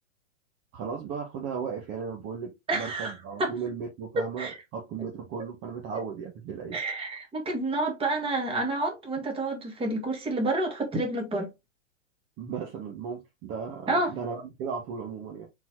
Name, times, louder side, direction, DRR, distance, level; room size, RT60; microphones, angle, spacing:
voice 1, 0.7-6.8 12.4-15.5, right 6 dB, 30° right, 1.2 m, -36 dB
voice 2, 2.7-3.1 3.4-3.5 4.1-4.6 6.7-11.5 13.9-14.1, right 2 dB, 15° right, 1.7 m, -29 dB
4.2 x 3.9 x 3.0 m
hypercardioid pair, 115°, 37 cm